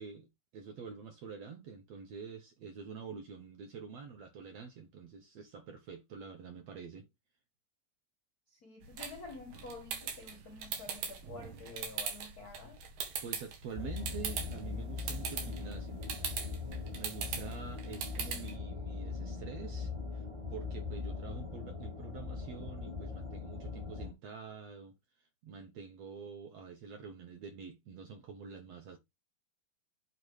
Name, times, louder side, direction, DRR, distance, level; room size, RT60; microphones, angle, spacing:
voice 1, 0.0-7.1 13.2-16.1 16.9-20.3 20.5-24.9 25.4-29.0, right 5 dB, 70° right, 1.7 m, -47 dB
voice 2, 8.5-12.8 17.0-17.3, left 3 dB, 70° left, 0.8 m, -49 dB
sound 1, 8.8-18.6, right 6 dB, 90° right, 3.4 m, -41 dB
sound 2, 13.7-24.1, left 4 dB, 30° right, 0.5 m, -41 dB
8.3 x 3.5 x 5.0 m
omnidirectional pair, 3.9 m